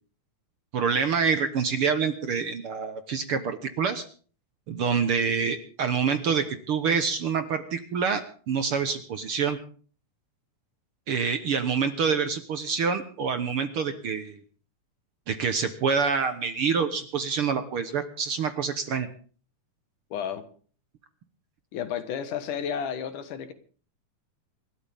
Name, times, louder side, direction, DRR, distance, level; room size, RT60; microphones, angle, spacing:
voice 1, 0.7-4.0 4.7-9.6 11.1-14.4 15.3-19.1, right 6 dB, 60° right, 9 dB, 1.6 m, -26 dB
voice 2, 20.1-20.4 21.7-23.5, left 8 dB, 85° left, 9 dB, 3.1 m, -32 dB
27.5 x 13.0 x 3.6 m, 0.43 s
omnidirectional pair, 3.6 m